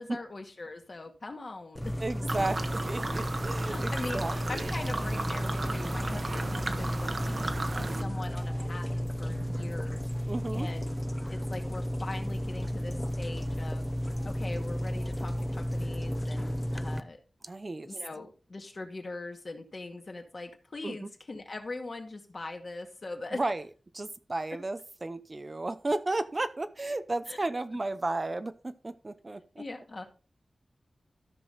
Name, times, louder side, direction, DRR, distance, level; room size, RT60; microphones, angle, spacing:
voice 1, 0.0-2.0 2.4-2.5 3.6-10.9 11.3-13.9 14.2-17.2 17.8-23.4 27.3-27.4 29.6-30.0, left 2 dB, 50° left, 3 dB, 2.1 m, -41 dB
sound 1, 1.8-17.0, equal, 5° left, 0.7 m, -33 dB
voice 2, 2.0-4.7 10.3-10.7 17.4-17.9 20.8-21.1 23.3-23.6 23.9-29.6, right 2 dB, 35° right, 11 dB, 0.7 m, -33 dB
sound 2, 2.3-8.0, right 2 dB, 50° right, 1.2 m, -35 dB
sound 3, 4.2-6.5 7.0-8.9 9.2-9.8, right 4 dB, 75° right, 0.7 m, -48 dB
13.5 x 6.1 x 4.1 m, 0.35 s
wide cardioid pair, 100°, 0 cm